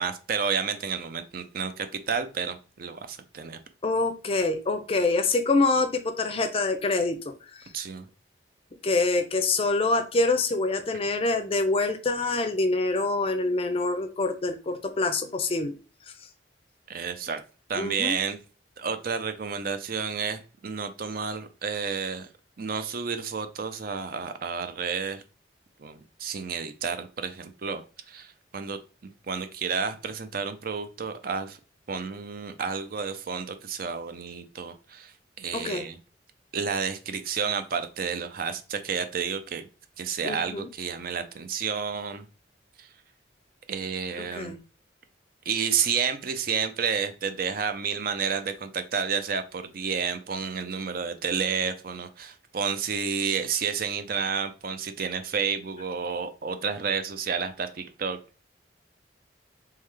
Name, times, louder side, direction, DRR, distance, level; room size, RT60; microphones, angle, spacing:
voice 1, 0.0-3.6 7.7-8.1 16.9-17.4 17.7-18.4 18.8-22.3 22.6-25.2 25.8-31.6 31.9-36.0 36.5-39.7 40.0-42.2 42.8-42.9 43.7-44.5 45.5-58.2, right 6 dB, 50° right, 9 dB, 0.5 m, -31 dB
voice 2, 3.8-7.2 8.8-15.8 17.8-18.2 35.5-35.9 40.2-40.7 44.2-44.6, left 3 dB, 30° left, 8 dB, 0.5 m, -25 dB
3.7 x 3.1 x 3.3 m, 0.35 s
head